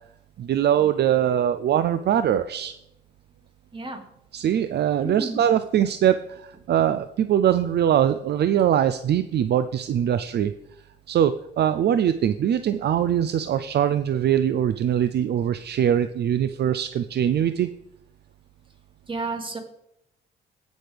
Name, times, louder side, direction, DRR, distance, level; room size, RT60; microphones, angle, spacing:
voice 1, 0.4-2.7 4.3-10.5 11.1-17.7, right 10 dB, 55° right, 11 dB, 0.5 m, -22 dB
voice 2, 3.7-4.0 5.0-5.4 19.1-19.6, right 3 dB, 25° right, 3 dB, 2.3 m, -32 dB
16.0 x 6.3 x 3.4 m, 0.77 s
cardioid pair, 90°, 20 cm